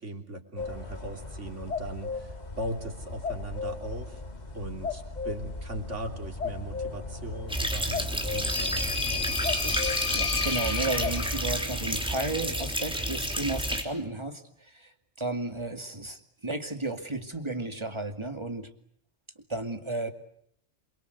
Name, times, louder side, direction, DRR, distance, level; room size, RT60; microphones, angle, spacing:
voice 1, 0.0-4.2 4.5-9.8, right 1 dB, 85° right, 4 dB, 3.6 m, -39 dB
sound 1, 0.6-11.3, left 4 dB, 35° left, 2.1 m, -37 dB
sound 2, 7.5-13.8, equal, 5° right, 3.4 m, -30 dB
sound 3, 8.0-11.8, left 5 dB, 90° left, 2.3 m, -33 dB
voice 2, 10.1-18.7 19.5-20.1, right 2 dB, 25° right, 6 dB, 2.4 m, -33 dB
27.5 x 23.5 x 8.2 m, 0.68 s
omnidirectional pair, 1.2 m